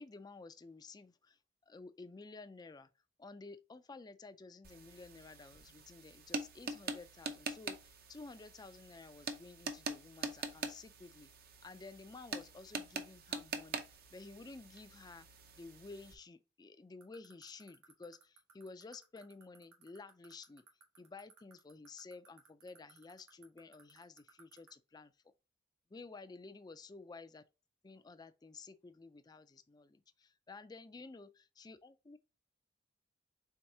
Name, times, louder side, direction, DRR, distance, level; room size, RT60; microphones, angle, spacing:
voice 1, 0.0-2.9 3.2-11.3 11.6-15.3 15.6-20.6 21.0-25.1 25.9-27.4 27.8-31.3 31.6-32.2, left 3 dB, 20° left, 0.3 m, -53 dB
sound 1, 4.6-16.2, right 4 dB, 50° right, 0.6 m, -45 dB
sound 2, 17.0-24.7, right 8 dB, 90° right, 1.6 m, -60 dB
4.6 x 3.5 x 2.7 m
head